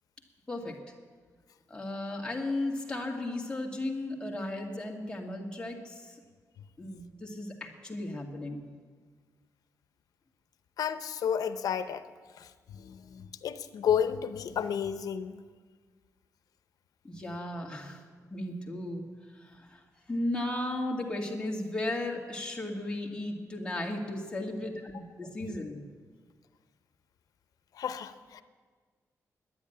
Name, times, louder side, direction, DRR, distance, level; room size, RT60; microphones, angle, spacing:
voice 1, 0.5-0.8 1.7-6.2 6.8-8.7 17.0-18.0 18.3-25.9, left 1 dB, 15° left, -1 dB, 2.1 m, -35 dB
voice 2, 10.8-12.0 12.7-15.4 27.8-28.4, left 8 dB, 85° left, 11 dB, 0.7 m, -31 dB
10.5 x 9.5 x 10.0 m, 1.5 s
wide cardioid pair, 115°, 6 cm